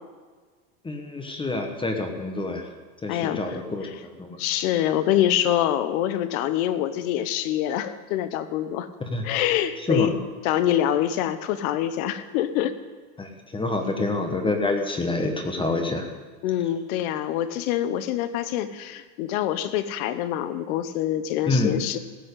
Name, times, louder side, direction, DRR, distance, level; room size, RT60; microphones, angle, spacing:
voice 1, 0.8-2.6 3.0-4.4 9.1-9.2 9.9-10.1 13.2-16.1 21.5-21.8, left 2 dB, 10° left, 4 dB, 1.2 m, -27 dB
voice 2, 3.1-4.0 4.4-8.9 9.2-12.7 16.4-22.0, left 11 dB, 60° left, 12 dB, 1.1 m, -25 dB
16.5 x 6.2 x 8.3 m, 1.4 s
supercardioid pair, 140°, 47 cm